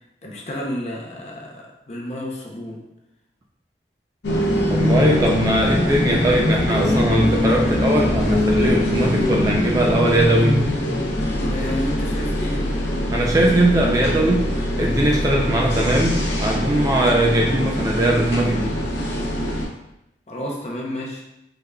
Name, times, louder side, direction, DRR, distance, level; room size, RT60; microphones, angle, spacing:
voice 1, 0.2-2.8 11.4-12.8 20.3-21.2, left 1 dB, 40° left, -1 dB, 0.6 m, -31 dB
sound 1, 4.2-19.7, left 1 dB, 85° left, 0.6 m, -22 dB
voice 2, 4.7-10.7 13.1-14.5 14.8-18.8, right 1 dB, 20° right, -1 dB, 0.3 m, -20 dB
3.6 x 3.3 x 2.2 m, 0.87 s
head